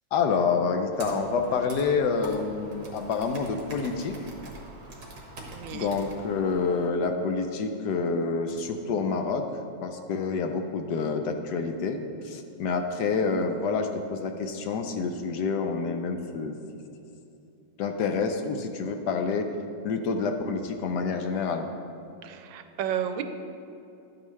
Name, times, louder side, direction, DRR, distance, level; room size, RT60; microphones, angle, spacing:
voice 1, 0.1-4.2 5.7-9.5 9.8-16.5 17.8-19.5 19.8-21.7, left 4 dB, 70° left, 5 dB, 1.1 m, -28 dB
Computer keyboard, 0.9-6.9, right 1 dB, 55° right, 1.8 m, -44 dB
voice 2, 5.5-5.9 22.2-23.2, right 9 dB, 85° right, 8 dB, 1.3 m, -32 dB
12.0 x 8.8 x 3.2 m, 2.7 s
omnidirectional pair, 2.0 m